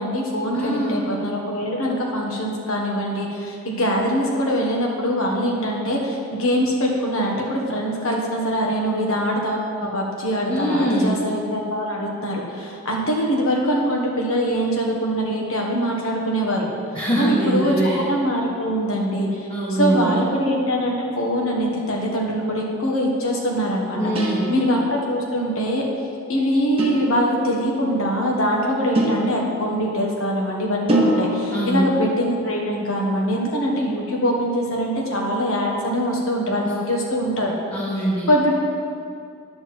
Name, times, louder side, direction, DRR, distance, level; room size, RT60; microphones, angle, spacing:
voice 1, 0.0-16.7 17.2-19.5 19.8-24.0 24.5-25.8 26.3-37.5 38.3-38.6, equal, 70° left, -1 dB, 1.4 m, -23 dB
voice 2, 0.5-1.1 10.5-11.1 16.9-18.0 19.5-20.2 23.9-24.5 31.5-31.9 37.7-38.3, right 1 dB, 20° left, -8 dB, 1.2 m, -22 dB
sound 1, 24.2-25.0 26.8-27.6 28.9-30.0 30.9-31.9, equal, 25° right, 1.0 m, -25 dB
9.4 x 4.3 x 7.0 m, 2.5 s
head